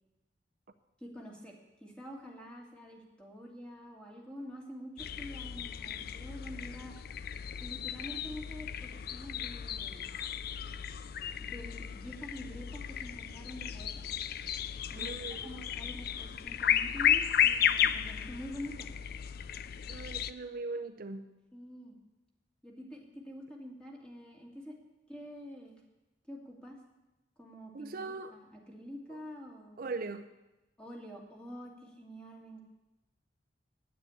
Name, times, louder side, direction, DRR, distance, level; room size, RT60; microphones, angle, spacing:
voice 1, 1.0-6.9 7.6-10.1 11.4-14.1 14.9-18.9 21.5-22.0 22.6-24.8 25.1-25.8 26.3-26.8 27.4-27.9 28.3-29.8 30.8-32.7, equal, 5° left, 2.3 m, -46 dB
sound 1, 5.0-20.3, left 9 dB, 60° left, 0.4 m, -34 dB
voice 2, 15.0-15.6 19.9-21.3 27.7-28.3 29.1-29.2 29.8-30.3, right 3 dB, 55° right, 0.6 m, -40 dB
9.3 x 8.6 x 9.6 m
head